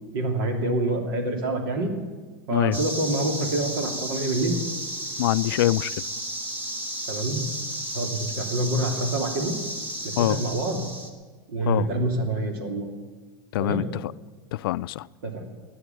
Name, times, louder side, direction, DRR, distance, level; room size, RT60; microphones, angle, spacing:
voice 1, 0.1-1.9 2.5-4.6 7.1-7.5 7.9-9.6 10.0-10.8 11.5-12.9 13.6-13.8 15.2-15.5, right 2 dB, 70° right, 2.9 m, -26 dB
sound 1, 2.7-11.1, right 1 dB, 15° right, 1.5 m, -33 dB
voice 2, 5.2-5.9 10.2-10.4 11.7-11.9 13.5-13.8 14.5-15.1, left 16 dB, 75° left, 0.4 m, -23 dB
14.5 x 9.5 x 9.3 m
supercardioid pair, 160°, 12 cm